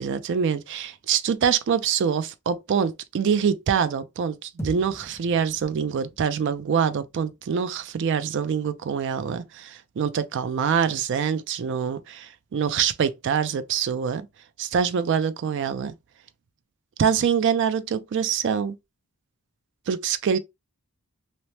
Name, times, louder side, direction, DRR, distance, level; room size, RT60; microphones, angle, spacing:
voice 1, 0.0-14.3 14.6-15.9 17.0-18.8 19.9-20.4, right 7 dB, 55° right, 0.3 m, -25 dB
sound 1, 4.6-8.9, left 1 dB, 15° left, 0.4 m, -43 dB
2.8 x 2.0 x 3.1 m
head